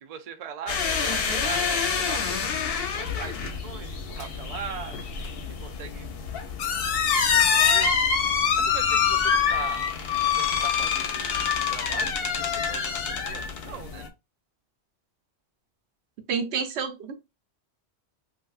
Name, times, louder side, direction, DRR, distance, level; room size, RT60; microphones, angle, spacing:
voice 1, 0.0-5.0 5.6-6.2 7.3-7.9 8.5-9.8 10.3-11.4 11.7-14.1, right 7 dB, 60° right, 0.4 m, -40 dB
sound 1, 0.7-14.1, left 6 dB, 65° left, 0.7 m, -26 dB
voice 2, 16.3-17.1, right 6 dB, 80° right, 1.0 m, -29 dB
3.2 x 2.5 x 2.4 m
omnidirectional pair, 1.1 m